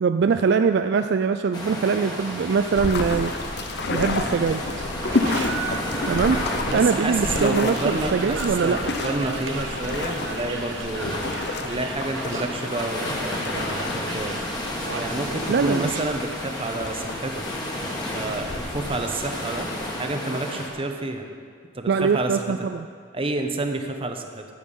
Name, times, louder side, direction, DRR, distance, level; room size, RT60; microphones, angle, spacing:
voice 1, 0.0-4.6 6.1-8.8 15.5-15.9 21.9-22.9, right 5 dB, 60° right, 8 dB, 0.4 m, -23 dB
sound 1, 1.5-20.7, left 1 dB, 20° left, 1.9 m, -33 dB
sound 2, 2.1-16.4, right 4 dB, 75° right, 1.0 m, -37 dB
sound 3, 2.8-20.0, left 3 dB, 60° left, 0.8 m, -31 dB
voice 2, 6.7-14.5 14.9-17.4 18.1-19.7 20.0-21.3 21.7-22.5 23.1-24.5, right 2 dB, 30° right, 5 dB, 0.9 m, -29 dB
13.5 x 8.4 x 5.5 m, 2.1 s
head